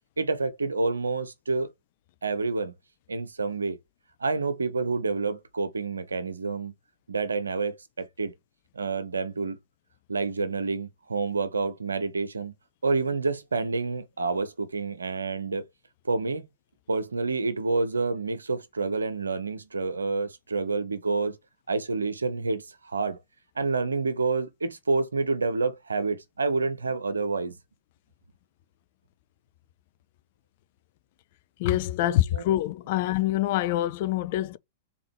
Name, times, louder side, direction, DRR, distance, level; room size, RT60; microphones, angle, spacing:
voice 1, 0.2-1.7 2.2-2.7 3.1-3.8 4.2-6.7 7.1-8.3 8.7-9.6 10.1-12.5 12.8-15.6 16.0-16.4 16.9-21.4 21.7-23.2 23.6-27.5 32.0-32.4, right 3 dB, 80° right, 0.8 m, -28 dB
voice 2, 31.6-34.6, left 14 dB, 50° left, 0.5 m, -25 dB
3.8 x 3.8 x 3.0 m
figure-of-eight pair, 100°, 0 cm